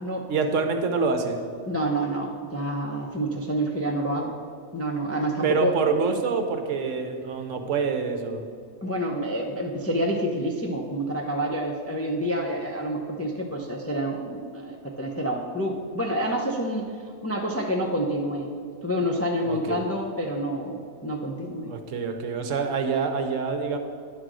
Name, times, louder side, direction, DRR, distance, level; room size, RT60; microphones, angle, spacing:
voice 1, 0.3-1.4 5.4-8.4 19.5-19.8 21.7-23.8, right 5 dB, 70° right, 6 dB, 1.1 m, -26 dB
voice 2, 1.7-4.3 4.7-5.7 8.8-16.8 17.2-18.5 18.8-21.7, right 1 dB, 20° left, 0 dB, 0.4 m, -28 dB
10.5 x 3.9 x 6.1 m, 2.2 s
omnidirectional pair, 1.4 m